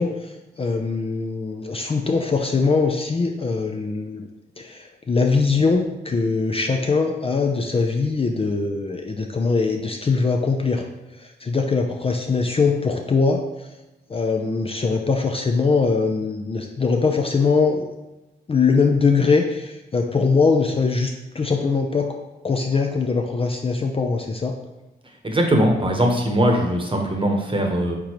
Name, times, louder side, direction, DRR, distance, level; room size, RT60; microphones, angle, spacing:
voice 1, 0.0-4.3 4.6-10.8 11.1-13.4 14.1-17.9 18.5-22.2 22.4-24.5, left 4 dB, 30° left, 2 dB, 0.5 m, -22 dB
voice 2, 25.2-28.0, right 1 dB, 25° right, 2 dB, 1.0 m, -20 dB
4.6 x 3.7 x 3.0 m, 1.0 s
supercardioid pair, 50°, 20 cm